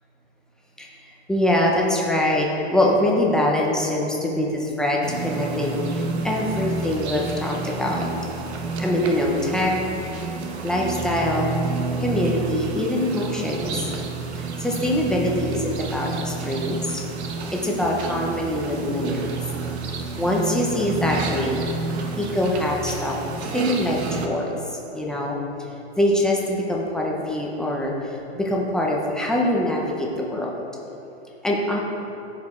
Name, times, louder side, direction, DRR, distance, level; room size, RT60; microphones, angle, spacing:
voice 1, 1.3-8.1 8.8-9.7 10.6-11.5 12.0-13.9 14.4-17.0 17.5-19.2 20.2-21.6 22.2-23.2 23.5-25.4 26.0-30.5 31.4-31.8, left 1 dB, ahead, -2 dB, 0.5 m, -24 dB
sound 1, 5.0-24.3, right 3 dB, 70° right, 1.1 m, -30 dB
14.5 x 5.0 x 3.5 m, 2.9 s
supercardioid pair, 155°, 34 cm